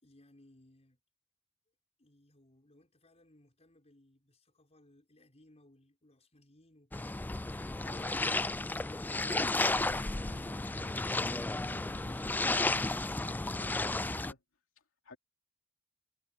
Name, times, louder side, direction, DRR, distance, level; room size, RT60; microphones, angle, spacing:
voice 1, 0.0-1.0 2.0-8.6, left 1 dB, 30° left, 5.5 m, -63 dB
sound 1, 6.9-14.3, left 2 dB, 10° left, 0.3 m, -33 dB
voice 2, 14.8-15.2, left 2 dB, 65° left, 2.9 m, -57 dB
head